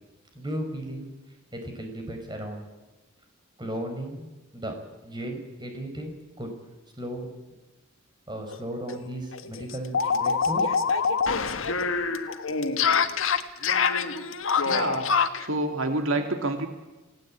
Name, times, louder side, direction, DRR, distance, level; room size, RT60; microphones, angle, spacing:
voice 1, 0.3-1.1 1.5-2.6 3.6-4.7 5.0-6.5 7.0-7.3 8.3-10.7, right 1 dB, 20° right, 4 dB, 5.0 m, -35 dB
sound 1, 8.5-8.6 8.9-9.0 9.3-15.5, left 5 dB, 75° left, 1.5 m, -25 dB
voice 2, 14.6-15.1 15.4-16.7, right 2 dB, 80° right, 5 dB, 2.4 m, -28 dB
29.0 x 17.5 x 8.7 m, 1.1 s
head